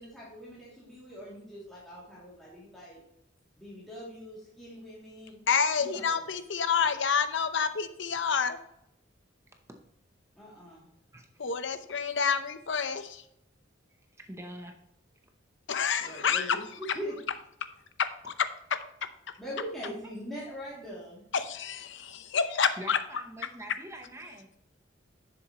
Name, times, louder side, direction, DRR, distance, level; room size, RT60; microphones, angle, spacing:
voice 1, 0.0-3.0 3.6-5.4 5.8-6.2 10.4-10.9 16.0-17.1 19.4-21.2, equal, ahead, -9 dB, 2.6 m, -42 dB
voice 2, 5.5-8.6 11.4-13.2 15.7-16.6 18.0-18.5 19.0-19.1 21.3-23.0, left 6 dB, 65° left, 10 dB, 0.7 m, -28 dB
voice 3, 11.1-11.5 14.2-14.8 22.8-24.5, right 1 dB, 15° right, 4 dB, 0.8 m, -44 dB
11.0 x 7.0 x 3.0 m, 0.77 s
head